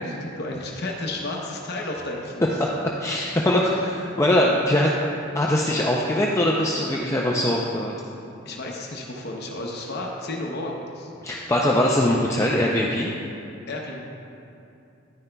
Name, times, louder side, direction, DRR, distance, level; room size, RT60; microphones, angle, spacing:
voice 1, 0.2-2.5 8.4-11.1 13.7-14.0, left 2 dB, 55° left, 0 dB, 0.8 m, -32 dB
voice 2, 2.6-4.9 5.3-7.9 11.2-13.1, left 1 dB, 15° left, -3 dB, 0.4 m, -22 dB
10.5 x 9.7 x 2.2 m, 2.7 s
head